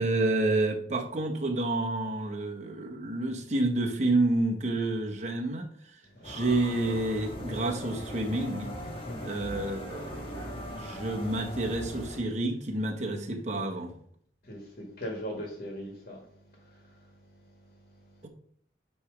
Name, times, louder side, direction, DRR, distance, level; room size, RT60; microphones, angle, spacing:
voice 1, 0.0-5.7 6.2-8.7 9.2-13.9 18.2-18.3, right 2 dB, 40° right, 1.0 m, -29 dB
sound 1, 6.2-12.2, equal, 30° left, 1.2 m, -40 dB
voice 2, 14.4-18.3, equal, 50° left, 1.6 m, -42 dB
9.1 x 3.2 x 5.0 m
head